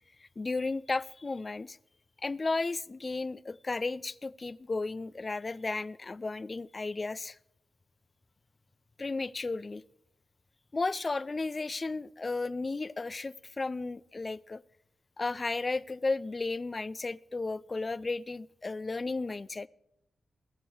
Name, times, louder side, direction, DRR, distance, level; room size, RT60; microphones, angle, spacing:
voice 1, 0.4-1.8 2.2-7.4 9.0-9.8 10.7-14.6 15.2-19.7, left 3 dB, 40° left, 0.4 m, -34 dB
19.5 x 7.0 x 4.7 m
cardioid pair, 50°, 0 cm